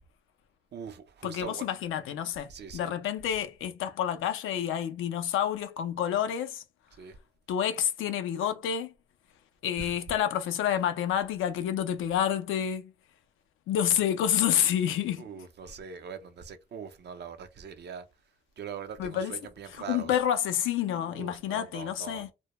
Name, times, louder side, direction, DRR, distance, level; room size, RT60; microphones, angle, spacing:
voice 1, 0.7-1.7 2.5-3.0 6.9-7.2 9.8-10.2 15.2-18.1 18.6-20.1 21.1-22.3, right 7 dB, 60° right, 0.5 m, -42 dB
voice 2, 1.2-2.5 2.7-6.6 7.5-8.9 9.6-12.9 13.7-15.2 19.0-19.3 19.9-22.3, left 10 dB, 80° left, 0.4 m, -28 dB
2.1 x 2.1 x 2.9 m
supercardioid pair, 50°, 20 cm